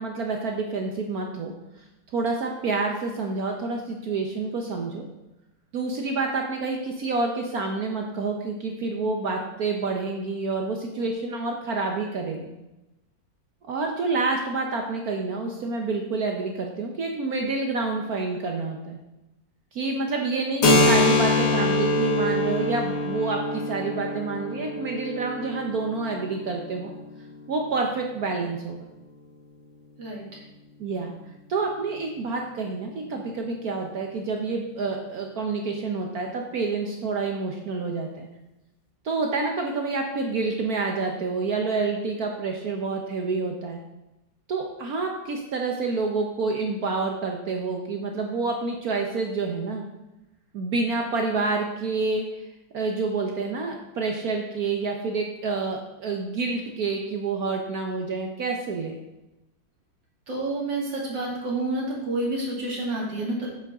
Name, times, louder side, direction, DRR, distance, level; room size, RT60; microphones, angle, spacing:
voice 1, 0.0-1.5 2.1-5.0 5.7-12.5 13.7-19.0 19.7-26.9 27.5-28.8 30.8-31.2 31.5-38.3 39.0-43.8 44.5-49.8 50.5-52.4 52.7-59.0, right 3 dB, 60° right, 2 dB, 1.3 m, -28 dB
Keyboard (musical), 20.6-28.0, left 2 dB, 50° left, 1.7 m, -25 dB
voice 2, 60.3-63.5, right 2 dB, 75° right, -3 dB, 3.4 m, -29 dB
10.0 x 8.3 x 3.7 m, 0.97 s
omnidirectional pair, 2.0 m